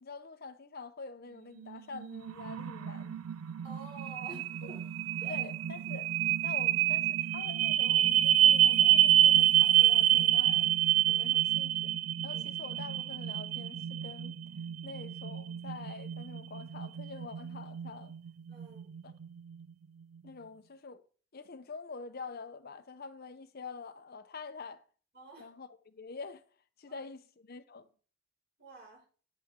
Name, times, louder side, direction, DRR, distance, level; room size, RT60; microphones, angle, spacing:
voice 1, 0.0-3.1 4.3-4.8 5.3-6.1 6.4-10.8 11.1-11.9 12.2-14.3 14.8-18.1 19.0-19.1 20.2-21.0 21.3-24.8 25.4-26.4 26.8-27.9, left 4 dB, 45° left, 0.7 m, -46 dB
sound 1, 1.6-19.6, right 12 dB, 90° right, 0.4 m, -28 dB
voice 2, 3.6-4.8 5.2-5.5 11.1-11.3 12.3-12.4 18.5-18.9 25.1-25.5 26.8-27.0 28.6-29.0, right 3 dB, 50° right, 5.4 m, -49 dB
11.0 x 8.5 x 3.7 m
head